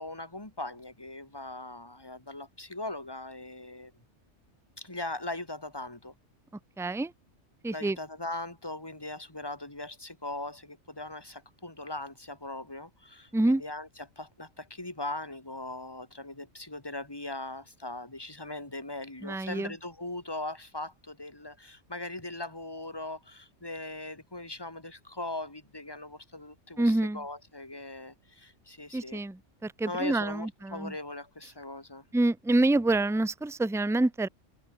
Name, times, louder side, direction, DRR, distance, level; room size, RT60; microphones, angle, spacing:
voice 1, 0.0-3.9 4.8-6.1 7.7-13.9 14.2-29.2 29.9-32.0, left 2 dB, 20° left, 3.3 m, -40 dB
voice 2, 6.8-7.1 7.6-8.0 13.3-13.6 19.2-19.7 26.8-27.2 28.9-30.9 32.1-34.3, right 2 dB, 5° right, 0.5 m, -27 dB
omnidirectional pair, 1.3 m